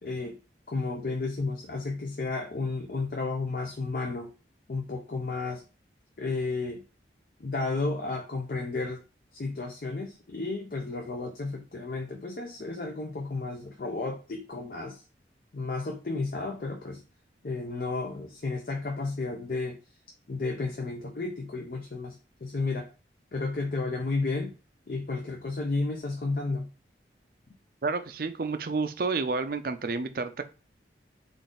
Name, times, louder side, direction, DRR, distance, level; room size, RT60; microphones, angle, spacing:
voice 1, 0.0-0.4 0.7-4.3 4.7-5.6 6.2-6.8 7.4-9.0 9.3-15.0 15.5-17.0 17.4-19.8 20.3-22.2 22.4-22.9 23.3-24.5 24.9-26.7, left 3 dB, 50° left, 2 dB, 0.5 m, -32 dB
voice 2, 27.8-30.4, right 4 dB, 55° right, 9 dB, 0.4 m, -30 dB
3.9 x 2.5 x 3.7 m, 0.33 s
head